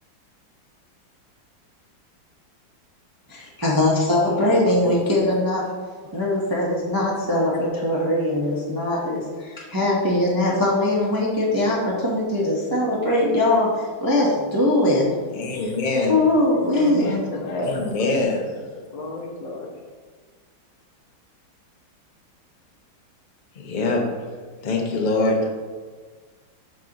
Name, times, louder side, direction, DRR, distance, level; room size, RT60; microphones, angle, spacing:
voice 1, 3.3-5.7 6.1-15.1 15.5-15.7 16.0-17.2, left 1 dB, 20° right, -4 dB, 0.6 m, -21 dB
voice 2, 15.3-16.2 17.6-18.4 23.6-24.3 24.6-25.5, left 2 dB, 40° left, 0 dB, 0.7 m, -23 dB
voice 3, 16.8-18.1 18.7-19.8, left 2 dB, 75° left, 0 dB, 1.8 m, -31 dB
11.5 x 3.9 x 2.9 m, 1.5 s
omnidirectional pair, 2.1 m